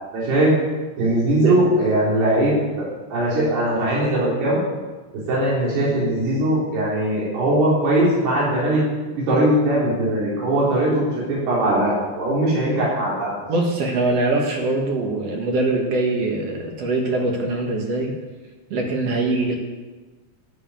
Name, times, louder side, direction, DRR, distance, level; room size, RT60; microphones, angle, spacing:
voice 1, 0.1-0.5 1.0-2.9 3.1-4.6 5.1-8.8 9.3-13.3, right 1 dB, 75° right, -6 dB, 5.7 m, -20 dB
voice 2, 13.5-18.2 18.7-19.6, right 2 dB, 55° right, 1 dB, 2.1 m, -22 dB
12.5 x 7.0 x 9.0 m, 1.3 s
omnidirectional pair, 4.6 m